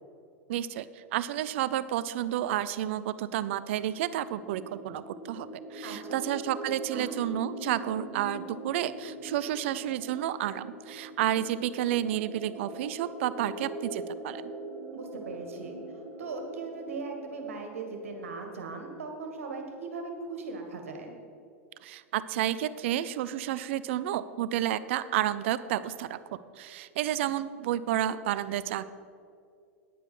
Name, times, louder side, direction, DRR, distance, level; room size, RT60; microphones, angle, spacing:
voice 1, 0.5-14.4 21.8-28.9, right 12 dB, 60° right, 15 dB, 0.5 m, -31 dB
sound 1, 3.8-19.4, right 1 dB, 5° right, 2.6 m, -43 dB
voice 2, 5.8-6.2 6.9-7.1 14.9-15.8 16.2-21.1, right 4 dB, 75° right, 3 dB, 2.0 m, -39 dB
10.5 x 8.8 x 6.2 m, 2.4 s
hypercardioid pair, 95°, 7 cm